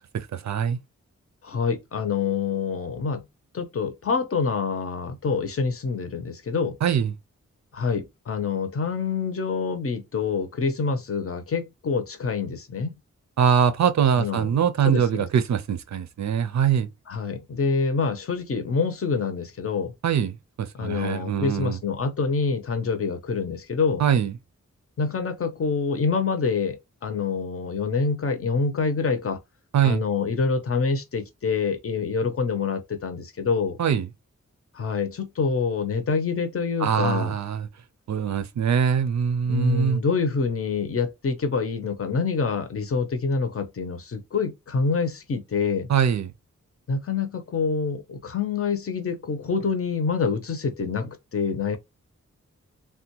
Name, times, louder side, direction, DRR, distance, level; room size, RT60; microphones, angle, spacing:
voice 1, 0.1-0.8 6.8-7.1 13.4-16.9 20.0-20.3 20.6-21.8 24.0-24.3 29.7-30.0 33.8-34.1 36.8-37.7 38.1-40.0 45.9-46.3, right 8 dB, 65° right, 0.5 m, -23 dB
voice 2, 1.4-3.2 3.5-6.8 7.7-12.9 14.2-14.5 14.8-15.3 17.1-19.9 20.7-24.0 25.0-29.4 29.8-33.8 34.7-37.4 39.5-45.9 46.9-51.8, left 5 dB, 50° left, 0.6 m, -26 dB
3.4 x 2.2 x 2.8 m
wide cardioid pair, 150°, 30 cm